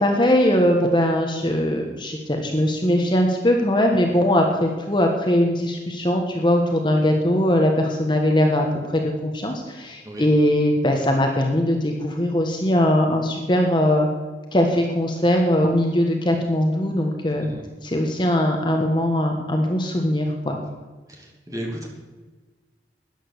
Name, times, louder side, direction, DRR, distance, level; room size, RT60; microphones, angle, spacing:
voice 1, 0.0-8.7 8.9-14.1 14.5-17.5 17.8-20.6, left 1 dB, 25° left, 2 dB, 1.3 m, -20 dB
voice 2, 21.1-21.9, right 1 dB, 20° right, 0 dB, 2.5 m, -34 dB
13.0 x 10.0 x 6.7 m, 1.3 s
head